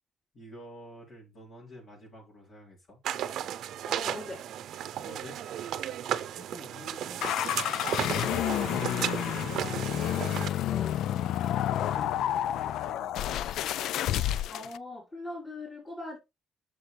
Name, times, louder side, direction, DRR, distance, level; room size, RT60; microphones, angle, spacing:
voice 1, 0.3-3.0 5.0-5.4 5.8-13.4, left 1 dB, 55° left, 4.4 m, -49 dB
sound 1, 3.0-10.5, right 10 dB, 75° right, 0.7 m, -34 dB
voice 2, 3.8-4.4 14.5-16.2, left 2 dB, 25° left, 3.9 m, -40 dB
sound 2, 7.2-14.8, left 11 dB, 80° left, 0.3 m, -30 dB
7.9 x 6.8 x 3.4 m
cardioid pair, 90°, 0 cm